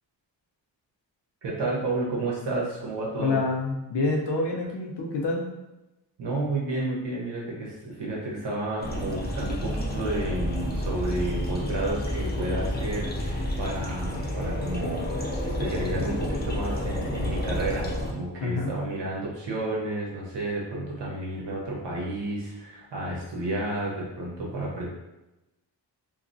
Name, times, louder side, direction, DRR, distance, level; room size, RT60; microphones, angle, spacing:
voice 1, 1.4-3.4 6.2-24.9, right 2 dB, 65° right, -4 dB, 1.0 m, -31 dB
voice 2, 3.2-5.5 18.4-18.7, left 3 dB, 65° left, 0 dB, 0.6 m, -27 dB
sound 1, 8.8-18.1, left 1 dB, 25° left, 0.3 m, -30 dB
2.9 x 2.3 x 2.6 m, 0.97 s
wide cardioid pair, 160°, 45 cm